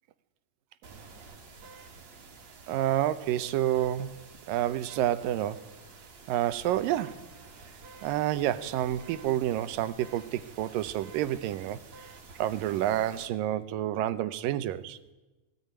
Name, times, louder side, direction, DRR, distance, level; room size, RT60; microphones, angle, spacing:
sound 1, 0.8-13.3, right 4 dB, 55° right, 3.4 m, -50 dB
voice 1, 2.7-4.1 4.5-5.7 6.3-7.3 8.0-11.8 12.4-15.0, right 12 dB, 90° right, 2.6 m, -29 dB
19.0 x 17.0 x 9.6 m
omnidirectional pair, 3.8 m